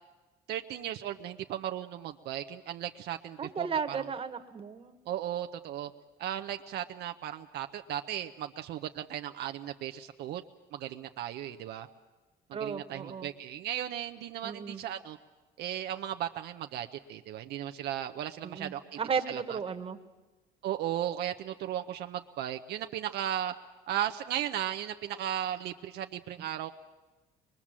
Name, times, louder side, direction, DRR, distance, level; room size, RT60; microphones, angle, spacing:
voice 1, 0.5-4.0 5.1-5.9 6.2-10.4 10.7-11.9 12.5-15.2 15.6-19.0 19.3-19.6 20.6-23.5 23.9-26.7, right 11 dB, 75° right, 7 dB, 0.8 m, -36 dB
voice 2, 3.4-5.0 12.5-13.3 14.4-14.8 18.4-20.0, right 6 dB, 35° right, 6 dB, 1.5 m, -35 dB
23.0 x 21.5 x 7.5 m, 1.2 s
cardioid pair, 110°, 17 cm